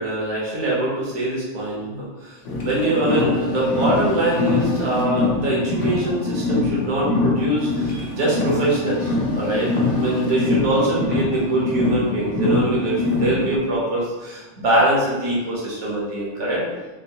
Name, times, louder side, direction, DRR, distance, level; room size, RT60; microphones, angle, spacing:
voice 1, 0.0-2.3 2.6-16.6, right 1 dB, 80° right, -5 dB, 1.4 m, -23 dB
Car, 2.4-13.6, left 3 dB, 80° left, 1.1 m, -24 dB
3.7 x 2.6 x 2.8 m, 1.2 s
omnidirectional pair, 1.2 m